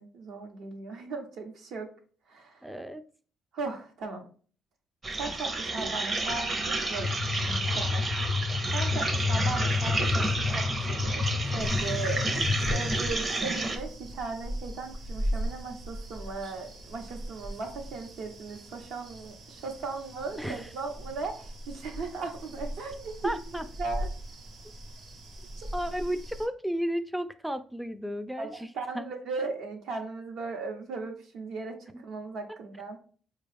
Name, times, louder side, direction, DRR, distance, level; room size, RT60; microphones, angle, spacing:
voice 1, 0.0-1.9 2.3-2.6 3.5-4.3 5.1-7.1 7.4-8.1 8.7-23.3 23.8-24.1 25.6-25.7 28.4-28.5 28.7-33.0, right 3 dB, 80° right, 3 dB, 0.9 m, -37 dB
voice 2, 2.6-3.0 20.4-20.7 23.2-23.6 25.7-28.7 28.9-29.1, equal, ahead, 10 dB, 0.3 m, -33 dB
sound 1, 5.0-13.8, right 2 dB, 35° right, 0.7 m, -31 dB
sound 2, 7.0-13.1, left 4 dB, 60° left, 0.5 m, -30 dB
sound 3, 11.6-26.5, equal, 60° right, 1.0 m, -39 dB
4.5 x 2.3 x 3.3 m, 0.42 s
cardioid pair, 90°, 0 cm